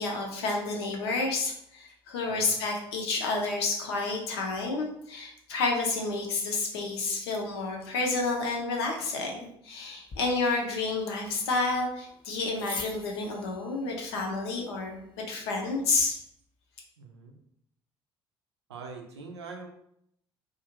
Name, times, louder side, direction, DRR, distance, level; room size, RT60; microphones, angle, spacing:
voice 1, 0.0-16.2, left 3 dB, 80° left, 1 dB, 0.6 m, -30 dB
voice 2, 2.2-2.5 17.0-17.4 18.7-19.7, right 4 dB, 90° right, 2 dB, 0.4 m, -43 dB
sound 1, 10.1-16.1, left 4 dB, 35° left, 0.6 m, -46 dB
2.5 x 2.4 x 2.8 m, 0.71 s
hypercardioid pair, 55°, 13 cm